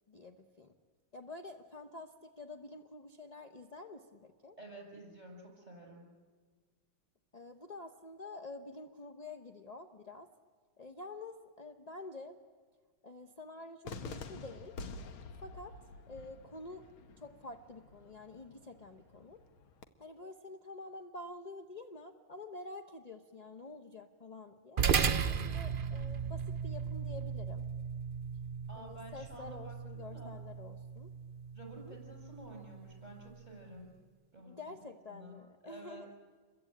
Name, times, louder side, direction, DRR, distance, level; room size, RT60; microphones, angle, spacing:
voice 1, 0.1-0.7 1.1-4.6 7.3-10.3 10.8-12.4 13.0-14.8 15.4-15.8 16.1-16.8 17.2-19.4 20.0-24.8 25.3-27.6 28.7-31.1 31.8-32.0 34.4-36.1, left 2 dB, 30° left, 5 dB, 0.7 m, -48 dB
voice 2, 4.6-6.1 28.7-30.3 31.5-34.0 34.3-34.6 34.8-36.1, right 1 dB, 20° right, 0 dB, 6.8 m, -51 dB
Cheering / Fireworks, 13.8-19.8, left 3 dB, 90° left, 2.2 m, -48 dB
sound 1, 24.8-33.4, right 6 dB, 60° right, 0.5 m, -36 dB
28.0 x 22.5 x 8.7 m, 1.5 s
omnidirectional pair, 2.2 m